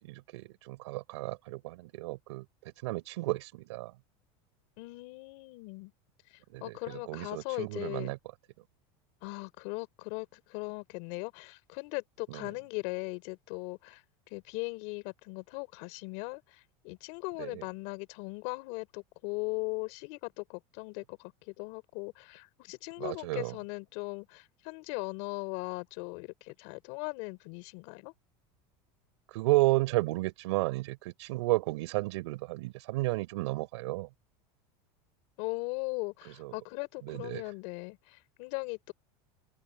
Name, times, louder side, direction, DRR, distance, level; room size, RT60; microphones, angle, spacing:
voice 1, 0.0-2.4 2.8-3.9 6.5-8.2 12.3-12.5 17.4-17.6 23.0-23.6 29.3-34.1 36.2-36.6 37.0-37.4, right 20 dB, 80° right, 4.5 m, -32 dB
voice 2, 4.8-5.9 6.6-8.1 9.2-14.0 14.3-28.1 35.4-38.9, left 29 dB, 55° left, 4.6 m, -39 dB
supercardioid pair, 165°, 14 cm